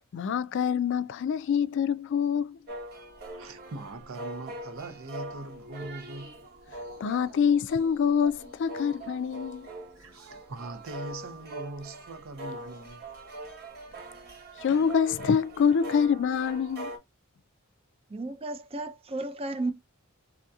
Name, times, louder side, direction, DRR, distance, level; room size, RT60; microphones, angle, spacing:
voice 1, 0.1-2.6 7.0-9.7 14.6-16.9, left 7 dB, 60° left, 0.3 m, -26 dB
chinese music pipa voice, 2.7-17.0, right 1 dB, 50° right, 1.1 m, -42 dB
voice 2, 3.3-6.4 10.0-13.0 13.4-13.5, right 2 dB, 75° right, 0.6 m, -41 dB
voice 3, 18.1-19.7, right 2 dB, 30° right, 0.5 m, -33 dB
3.4 x 2.7 x 2.3 m
head